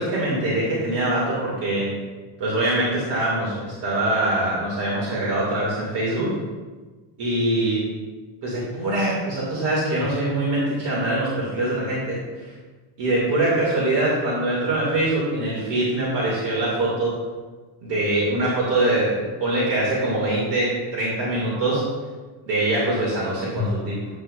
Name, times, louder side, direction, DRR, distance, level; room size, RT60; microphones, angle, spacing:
voice 1, 0.0-1.9 2.4-6.3 7.2-7.8 8.4-12.5 13.0-17.2 17.8-21.8 22.5-24.0, right 1 dB, 55° right, -6 dB, 2.4 m, -23 dB
9.6 x 8.1 x 2.5 m, 1.3 s
cardioid pair, 180°, 49 cm